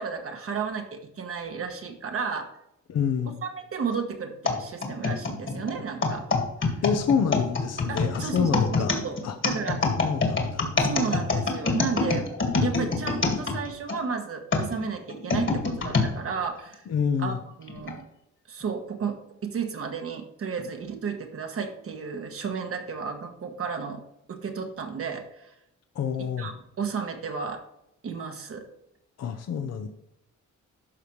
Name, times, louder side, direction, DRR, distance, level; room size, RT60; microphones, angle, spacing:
voice 1, 0.0-2.5 3.4-6.3 7.9-9.2 9.4-9.8 10.8-12.3 12.6-16.8 17.2-18.0 18.5-19.2 19.4-24.0 24.3-25.5 26.2-27.6 28.0-28.6, right 6 dB, 50° right, 4 dB, 1.3 m, -33 dB
voice 2, 2.9-3.4 6.8-9.0 9.2-9.4 10.0-10.7 16.9-17.4 25.9-26.5 29.2-29.9, left 7 dB, 60° left, 7 dB, 0.7 m, -27 dB
sound 1, 4.4-14.0 14.5-16.1 16.7-16.8 17.7-17.9, left 3 dB, 40° left, 1.7 m, -25 dB
12.0 x 5.0 x 3.2 m, 0.81 s
cardioid pair, 115°, 30 cm